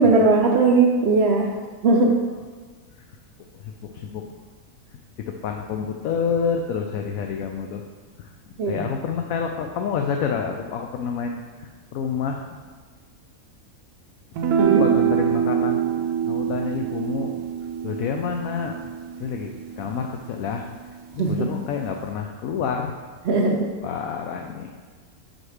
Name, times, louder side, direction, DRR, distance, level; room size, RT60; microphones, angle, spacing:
voice 1, 0.0-1.5 1.8-2.2 8.6-8.9 14.6-14.9 21.2-21.5 23.2-23.7, right 3 dB, 65° right, 1 dB, 0.7 m, -18 dB
voice 2, 3.5-4.3 5.4-7.8 8.2-8.3 8.7-12.4 14.8-15.8 16.2-17.3 17.8-20.6 21.1-22.9 23.8-24.7, left 6 dB, 75° left, 3 dB, 1.0 m, -28 dB
sound 1, 14.4-20.9, right 8 dB, 85° right, 1.1 m, -25 dB
5.9 x 5.2 x 4.8 m, 1.5 s
omnidirectional pair, 1.6 m